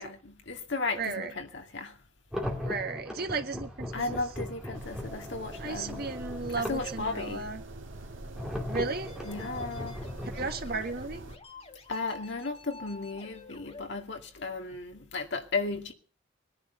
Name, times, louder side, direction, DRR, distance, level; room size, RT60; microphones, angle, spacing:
voice 1, 0.0-2.0 3.9-6.1 6.6-7.5 9.2-10.0 11.9-15.9, left 3 dB, 60° left, 2.2 m, -35 dB
voice 2, 1.0-1.3 2.6-4.2 5.6-7.6 8.7-9.2 10.3-11.2, right 3 dB, 50° right, 1.7 m, -34 dB
sound 1, 2.3-7.0 8.4-10.6, left 1 dB, 5° right, 2.5 m, -38 dB
sound 2, 4.7-11.4, right 1 dB, 70° right, 1.8 m, -44 dB
sound 3, 8.8-13.8, left 2 dB, 30° left, 1.7 m, -48 dB
19.5 x 10.5 x 6.9 m
head